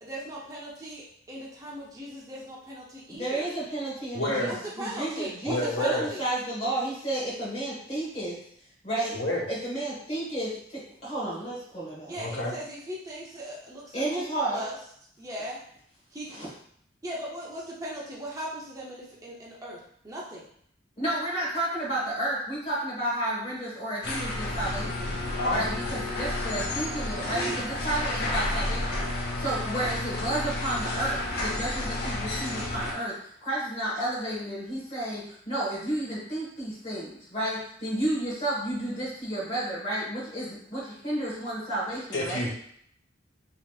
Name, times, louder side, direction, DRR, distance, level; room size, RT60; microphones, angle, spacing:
voice 1, 0.0-3.5 4.4-6.3 12.1-14.8 15.2-15.6 16.1-16.3 17.0-20.4 27.1-27.6 29.8-30.0, right 1 dB, 20° right, -5 dB, 0.6 m, -38 dB
voice 2, 3.1-8.4 8.8-9.2 9.5-12.1 13.9-14.6 16.3-16.5 21.0-42.5, right 1 dB, 35° left, -7 dB, 1.4 m, -32 dB
voice 3, 4.1-4.5 5.5-6.1 9.1-9.4 12.2-12.5 25.4-25.7 42.1-42.5, left 1 dB, 85° left, -3 dB, 1.2 m, -29 dB
sound 1, 24.0-32.9, left 2 dB, 55° left, 0.9 m, -31 dB
5.5 x 2.9 x 2.4 m, 0.67 s
head